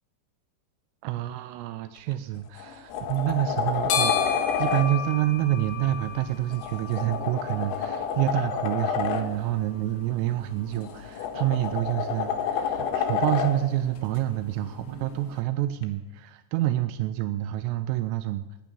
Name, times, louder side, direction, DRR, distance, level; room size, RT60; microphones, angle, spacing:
voice 1, 1.0-18.5, right 14 dB, 85° right, 11 dB, 3.2 m, -28 dB
sound 1, 2.0-2.1 2.6-4.8 6.5-9.2 10.7-13.5 15.8-15.9, left 7 dB, 85° left, 4.3 m, -29 dB
sound 2, 2.9-15.4, left 7 dB, 70° left, 4.0 m, -37 dB
15.0 x 10.5 x 7.1 m, 1.1 s
omnidirectional pair, 5.8 m